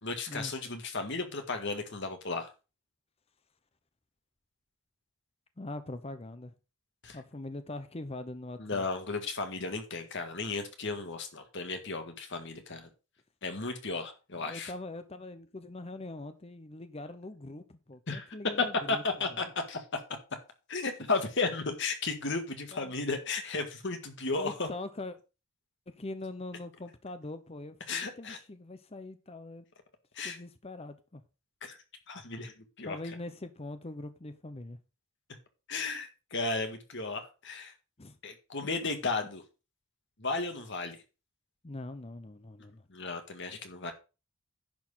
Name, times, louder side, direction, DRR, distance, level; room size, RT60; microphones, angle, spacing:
voice 1, 0.0-2.5 7.0-7.2 8.6-12.9 13.4-14.7 18.1-18.3 18.9-20.0 20.7-24.7 27.9-28.4 30.1-30.4 31.6-31.8 32.1-33.0 35.7-37.7 38.2-39.4 40.2-41.0 42.9-43.9, left 3 dB, 55° left, 1.8 m, -34 dB
voice 2, 5.6-6.5 7.1-8.8 14.4-19.0 19.3-19.5 22.7-22.9 24.4-25.2 25.9-29.7 30.2-31.2 32.8-34.8 38.0-38.2 41.6-42.9, left 2 dB, 25° left, 0.7 m, -42 dB
10.5 x 4.7 x 5.6 m
head